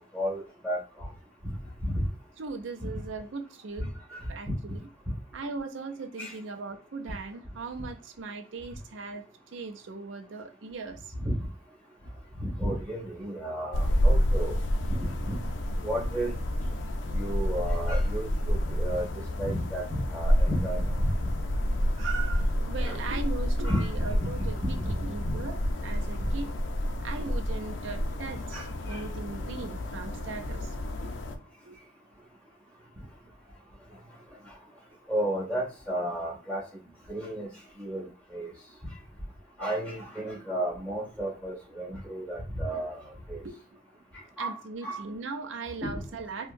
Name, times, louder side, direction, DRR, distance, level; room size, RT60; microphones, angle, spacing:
voice 1, 0.1-1.1 1.8-2.0 4.5-4.6 6.2-6.3 11.3-11.4 12.4-14.5 15.8-16.3 17.1-19.0 19.4-21.1 22.8-23.0 23.6-24.0 24.8-24.9 28.5-28.6 28.9-29.0 35.1-36.6 37.1-37.5 37.8-38.1 38.3-38.5 39.6-43.0 43.3-43.4 44.4-44.6 44.8-45.0 45.8-46.0, right 1 dB, 5° left, 1.8 m, -32 dB
voice 2, 2.4-3.9 4.3-4.8 5.3-11.1 22.0-26.5 27.0-30.7 31.0-31.8 42.6-42.8 43.4-43.6 44.4-46.5, right 4 dB, 80° right, 0.5 m, -39 dB
sound 1, 13.7-31.4, equal, 80° left, 0.5 m, -29 dB
4.5 x 2.2 x 2.5 m
head